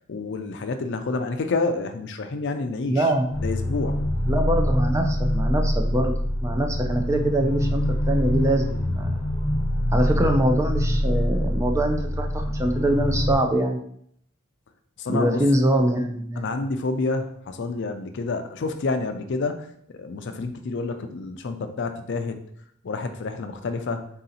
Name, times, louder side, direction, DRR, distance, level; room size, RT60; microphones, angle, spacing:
voice 1, 0.1-3.1 3.4-4.0 15.0-15.4 16.4-22.4 22.8-24.1, left 3 dB, 55° left, 7 dB, 0.4 m, -28 dB
voice 2, 2.8-3.3 4.3-6.1 6.4-9.1 9.9-13.8 15.1-16.4, right 1 dB, 15° right, 3 dB, 0.4 m, -23 dB
sound 1, 3.3-13.4, equal, 20° left, 0.8 m, -24 dB
4.0 x 2.8 x 3.9 m, 0.66 s
head